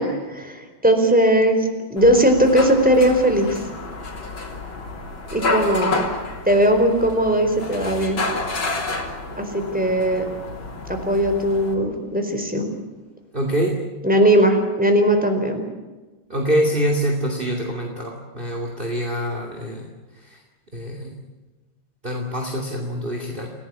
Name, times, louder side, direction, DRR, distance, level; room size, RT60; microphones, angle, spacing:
voice 1, 0.2-3.6 5.3-6.0 6.5-8.2 9.4-10.2 10.9-12.7 14.0-15.6, right 1 dB, 5° right, 5 dB, 4.4 m, -18 dB
sound 1, 2.0-11.7, left 3 dB, 65° left, 4.4 m, -29 dB
voice 2, 13.3-13.8 16.3-19.9 20.2-20.4 20.7-21.2 22.0-23.5, equal, 25° right, 1 dB, 2.8 m, -25 dB
28.5 x 18.0 x 8.7 m, 1.2 s
omnidirectional pair, 2.3 m